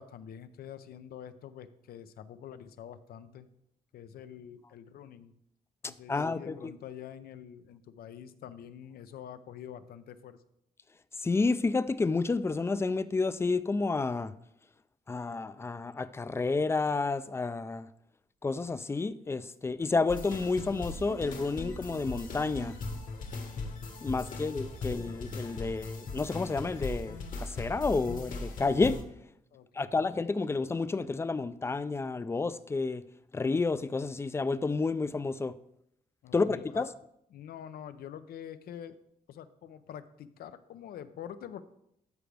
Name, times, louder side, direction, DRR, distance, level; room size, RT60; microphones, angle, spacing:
voice 1, 0.0-3.5 3.9-5.3 5.8-10.4 24.1-24.8 29.5-30.0 36.2-36.9 37.3-39.0 39.3-41.6, left 9 dB, 90° left, 0.6 m, -46 dB
voice 2, 5.8-6.7 11.2-14.3 15.1-17.9 18.4-22.7 24.0-29.0 29.7-33.0 33.3-35.5 36.3-36.9, left 3 dB, 15° left, 0.3 m, -30 dB
sound 1, 20.1-29.0, left 3 dB, 60° left, 1.3 m, -39 dB
13.0 x 5.0 x 3.4 m
cardioid pair, 125°, 15 cm